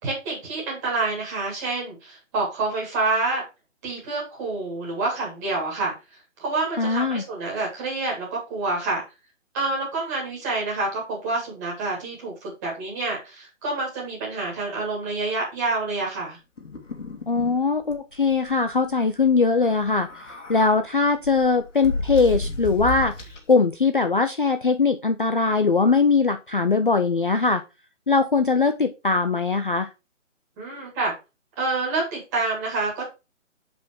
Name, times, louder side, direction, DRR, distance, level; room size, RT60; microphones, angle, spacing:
voice 1, 0.0-3.4 3.8-5.9 6.4-9.0 9.5-16.4 30.6-31.1 31.6-33.0, right 3 dB, 15° right, -3 dB, 1.9 m, -27 dB
voice 2, 6.8-7.2 17.3-23.1 23.5-27.6 28.1-29.9, left 4 dB, 45° left, 8 dB, 0.4 m, -21 dB
mouth noises (distorted), 16.6-17.6 17.9-18.0 18.3-18.5 19.7-20.7 21.2-23.5, left 1 dB, 65° left, 2.2 m, -32 dB
5.8 x 5.1 x 4.4 m, 0.28 s
hypercardioid pair, 170°, 39 cm